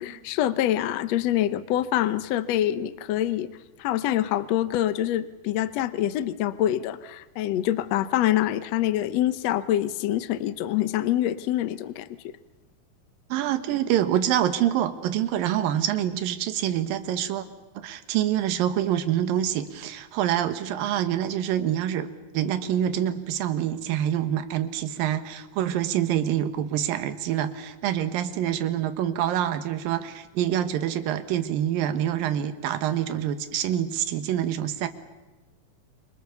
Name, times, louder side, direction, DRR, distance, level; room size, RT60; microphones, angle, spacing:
voice 1, 0.0-3.5 3.8-12.1, left 12 dB, 80° left, 14 dB, 1.5 m, -25 dB
voice 2, 13.3-17.5 17.7-22.1 22.3-34.9, right 11 dB, 70° right, 10 dB, 3.0 m, -26 dB
27.5 x 25.0 x 7.0 m, 1.2 s
omnidirectional pair, 4.3 m